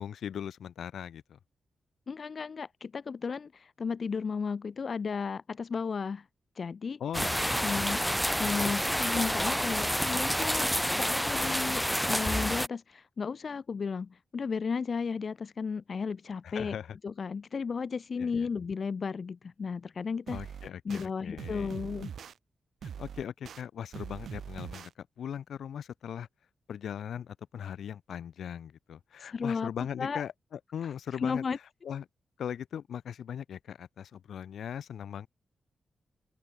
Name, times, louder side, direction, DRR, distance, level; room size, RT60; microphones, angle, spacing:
voice 1, 0.0-1.4 7.0-7.7 16.4-17.0 18.2-18.5 20.3-21.8 23.0-26.3 26.7-31.5 31.8-32.1 32.4-35.3, left 9 dB, 80° left, 3.5 m, -39 dB
voice 2, 2.1-6.3 6.5-7.0 7.6-8.0 8.4-16.8 17.0-20.4 20.8-22.1 29.2-29.7 30.0-30.2 30.8-31.6, left 5 dB, 45° left, 1.2 m, -34 dB
sound 1, 7.1-12.7, equal, ahead, 1.1 m, -29 dB
sound 2, 20.3-21.1 21.4-22.3 22.8-23.6 23.9-24.9, right 8 dB, 75° right, 7.1 m, -42 dB
open air
wide cardioid pair, 125°, 0 cm